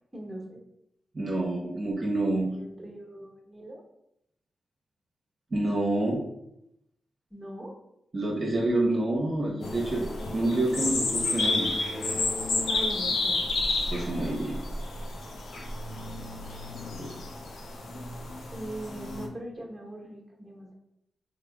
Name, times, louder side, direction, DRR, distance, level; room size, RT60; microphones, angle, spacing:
voice 1, 0.1-0.6 2.3-3.8 7.3-7.7 12.7-13.4 18.5-20.7, right 1 dB, 15° right, -2 dB, 1.0 m, -41 dB
voice 2, 1.1-2.5 5.5-6.2 8.1-11.7 13.9-14.6 17.0-17.1, right 2 dB, 45° right, -3 dB, 0.8 m, -28 dB
sound 1, 9.6-19.3, left 3 dB, 85° left, 0.5 m, -31 dB
3.4 x 2.0 x 3.4 m, 0.80 s
cardioid pair, 60°, 0 cm